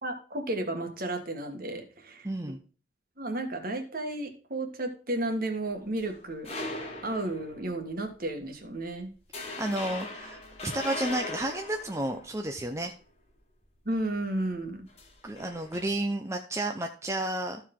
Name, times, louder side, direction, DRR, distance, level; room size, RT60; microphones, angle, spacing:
voice 1, 0.0-2.3 3.2-6.5 7.0-9.1 13.8-14.9, right 1 dB, 50° right, 5 dB, 1.8 m, -33 dB
voice 2, 2.2-2.6 9.6-12.9 15.2-17.6, right 1 dB, 15° right, 4 dB, 0.7 m, -32 dB
sound 1, 5.6-7.8 8.3-8.5 8.8-9.0 9.3-12.8 14.9-15.9, left 2 dB, 35° left, 1.5 m, -39 dB
14.0 x 4.7 x 3.8 m, 0.38 s
head